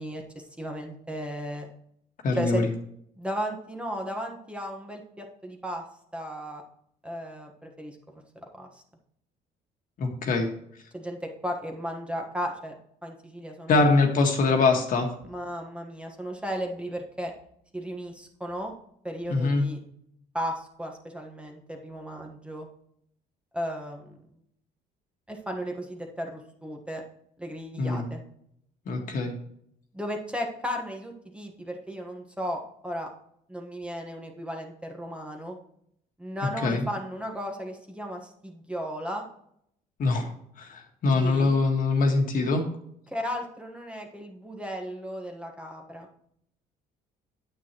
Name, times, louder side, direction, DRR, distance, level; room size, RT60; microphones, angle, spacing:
voice 1, 0.0-1.7 2.4-2.7 3.2-5.8 6.1-6.6 7.0-8.0 8.6-8.8 10.9-12.7 13.0-13.8 15.2-17.3 17.7-18.7 19.0-19.8 20.3-22.7 23.5-24.2 25.3-27.0 27.4-28.2 29.9-33.1 33.5-35.6 36.2-39.2 41.1-41.6 43.1-46.1, equal, 5° right, 2 dB, 1.3 m, -35 dB
voice 2, 2.2-2.6 10.0-10.6 13.7-15.1 19.3-19.7 27.8-28.0 28.9-29.3 36.6-36.9 40.0-40.3 40.6-42.6, left 3 dB, 55° left, 3 dB, 1.7 m, -23 dB
9.1 x 8.2 x 3.0 m, 0.70 s
cardioid pair, 110°, 17 cm